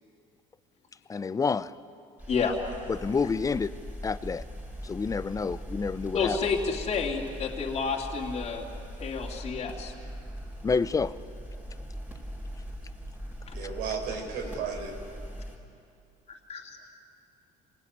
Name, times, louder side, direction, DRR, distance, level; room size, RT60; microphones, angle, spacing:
voice 1, 1.1-1.7 2.9-3.7 4.0-4.4 4.8-6.4 10.6-11.1, left 5 dB, 20° left, 15 dB, 0.7 m, -28 dB
sound 1, 2.2-15.6, equal, 10° right, 5.1 m, -41 dB
voice 2, 6.1-8.7 9.0-9.9 13.5-13.6 16.5-16.8, left 5 dB, 40° left, -1 dB, 2.8 m, -30 dB
voice 3, 13.5-14.9, right 5 dB, 85° right, 1 dB, 4.8 m, -34 dB
26.5 x 18.5 x 9.6 m, 2.5 s
cardioid pair, 115°, 16 cm